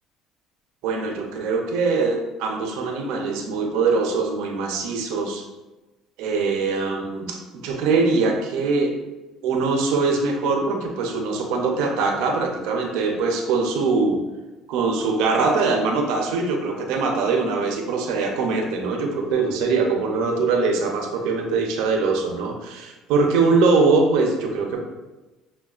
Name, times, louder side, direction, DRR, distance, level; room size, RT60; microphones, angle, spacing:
voice 1, 0.8-5.4 6.2-8.9 9.4-14.2 14.7-24.8, right 4 dB, 80° right, 2 dB, 0.6 m, -22 dB
5.6 x 2.2 x 2.4 m, 1.1 s
cardioid pair, 110°, 0 cm